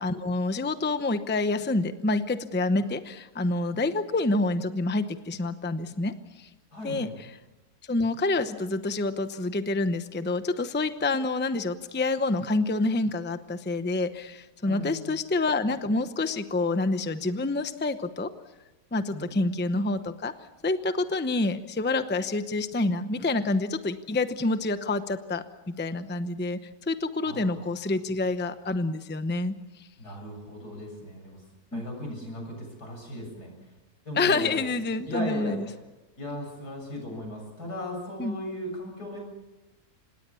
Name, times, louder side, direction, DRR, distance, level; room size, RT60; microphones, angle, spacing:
voice 1, 0.0-6.5 6.8-7.1 7.9-18.3 18.9-20.3 20.6-26.6 26.9-29.9 31.7-31.8 34.2-35.7 38.2-38.4, left 2 dB, 10° left, 10 dB, 0.6 m, -27 dB
voice 2, 6.7-7.1 14.6-15.2 19.1-19.4 27.2-27.8 30.0-31.4 31.7-33.5 34.0-34.7 35.0-35.6 36.2-39.2, left 1 dB, 90° left, 2 dB, 7.9 m, -37 dB
26.5 x 20.0 x 7.0 m, 1.1 s
omnidirectional pair, 1.7 m